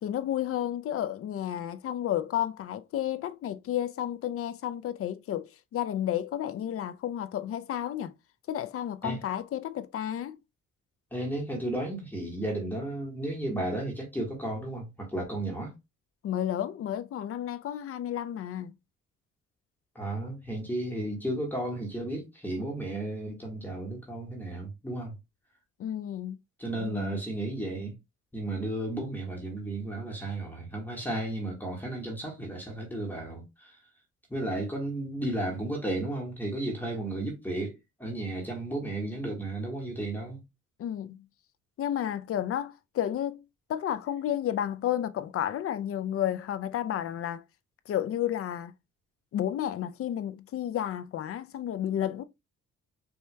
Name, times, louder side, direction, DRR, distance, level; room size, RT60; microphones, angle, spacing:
voice 1, 0.0-8.1 8.5-10.4 16.2-18.7 25.8-26.4 26.8-27.2 40.8-41.2 41.8-43.4 43.7-47.4 47.9-48.7 49.3-52.2, left 11 dB, 50° left, 0.4 m, -32 dB
voice 2, 11.1-15.8 19.9-25.1 26.6-27.9 28.3-33.8 34.3-40.4, right 1 dB, 5° left, 1.5 m, -33 dB
4.5 x 2.8 x 2.2 m
cardioid pair, 90°, 30 cm